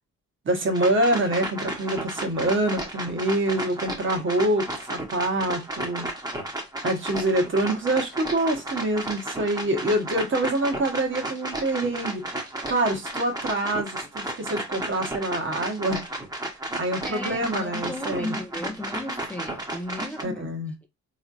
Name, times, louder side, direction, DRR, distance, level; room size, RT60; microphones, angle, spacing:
voice 1, 0.4-6.1 6.8-16.1 16.8-18.3 20.2-20.7, right 1 dB, 40° right, 1.3 m, -26 dB
sound 1, 0.7-20.2, right 1 dB, 15° right, 1.1 m, -33 dB
voice 2, 17.0-20.4 20.8-20.9, left 1 dB, 5° left, 0.5 m, -34 dB
3.6 x 3.2 x 2.6 m
cardioid pair, 90°, 30 cm